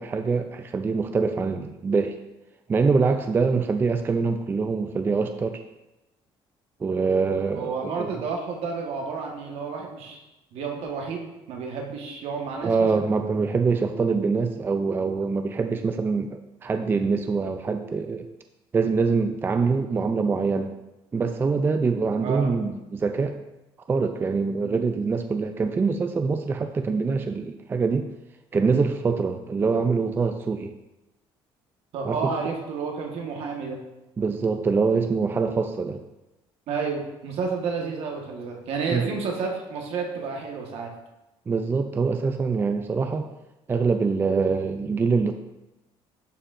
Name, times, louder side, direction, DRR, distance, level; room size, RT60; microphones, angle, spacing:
voice 1, 0.0-2.2 2.7-5.6 6.8-8.2 12.6-18.3 18.7-20.7 21.1-23.4 23.9-28.1 28.5-30.7 32.0-32.3 34.2-36.0 38.9-39.2 41.5-43.3 43.7-45.3, right 4 dB, 20° right, 7 dB, 0.3 m, -24 dB
voice 2, 7.5-10.2 10.5-13.1 22.2-22.5 31.9-33.8 36.7-40.9, right 5 dB, 70° right, 1 dB, 1.3 m, -31 dB
11.5 x 4.5 x 2.5 m, 0.97 s
cardioid pair, 125°, 11 cm